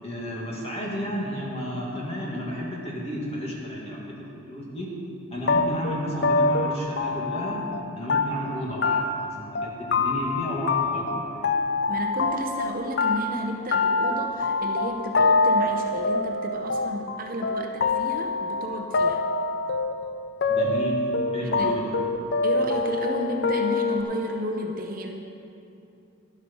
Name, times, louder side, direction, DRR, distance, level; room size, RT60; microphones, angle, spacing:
voice 1, 0.0-4.0 4.5-4.9 5.3-7.7 7.9-11.5 20.5-21.1 21.3-22.0, equal, 30° left, -4 dB, 2.0 m, -32 dB
sound 1, 5.5-7.8 8.1-8.6 8.8-9.3 9.6-10.4 10.7-12.7 13.0-24.0, left 3 dB, 55° left, 0.5 m, -24 dB
voice 2, 11.9-19.2 21.6-21.8 22.4-25.3, equal, 40° right, 3 dB, 0.7 m, -32 dB
11.5 x 8.2 x 5.4 m, 2.7 s
head